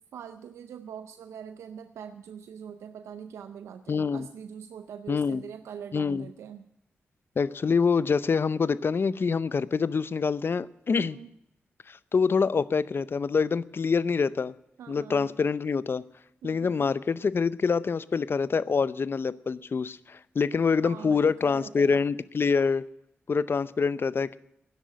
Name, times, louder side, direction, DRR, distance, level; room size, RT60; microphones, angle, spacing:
voice 1, 0.1-6.7 10.9-11.4 14.8-15.3 16.4-16.9 20.8-22.0, right 8 dB, 90° right, 10 dB, 0.5 m, -43 dB
voice 2, 3.9-4.3 5.1-5.4 5.9-6.3 7.4-11.2 11.9-14.5 14.9-16.0 16.4-22.9 23.3-24.4, left 5 dB, 55° left, 18 dB, 0.6 m, -26 dB
11.5 x 10.0 x 9.4 m, 0.78 s
cardioid pair, 45°, 5 cm